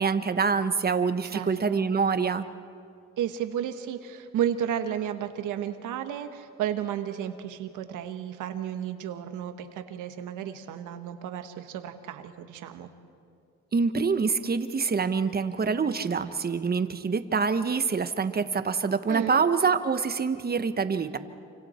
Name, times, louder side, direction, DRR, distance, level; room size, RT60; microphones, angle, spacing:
voice 1, 0.0-2.4 13.7-21.2, right 5 dB, 30° right, 10 dB, 1.2 m, -26 dB
voice 2, 1.2-1.8 3.2-12.9 19.1-19.4, right 10 dB, 85° right, 7 dB, 1.5 m, -33 dB
28.5 x 25.5 x 4.5 m, 2.3 s
cardioid pair, 90°, 30 cm